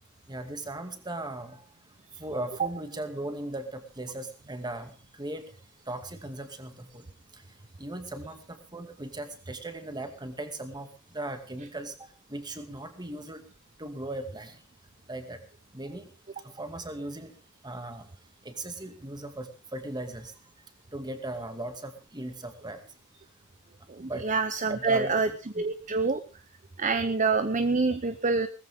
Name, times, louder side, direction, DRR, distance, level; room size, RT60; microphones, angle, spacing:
voice 1, 0.3-1.6 2.2-5.5 5.9-7.0 7.3-7.4 7.8-12.0 12.3-13.4 13.8-14.6 15.1-15.4 15.7-16.1 16.4-17.3 17.6-18.1 18.4-20.3 20.9-22.8 24.0-24.2 24.7-25.6, right 1 dB, 20° right, 7 dB, 2.3 m, -38 dB
voice 2, 24.0-25.3 25.6-26.2 26.8-28.5, right 4 dB, 35° right, 10 dB, 0.9 m, -26 dB
19.0 x 14.5 x 3.7 m, 0.35 s
head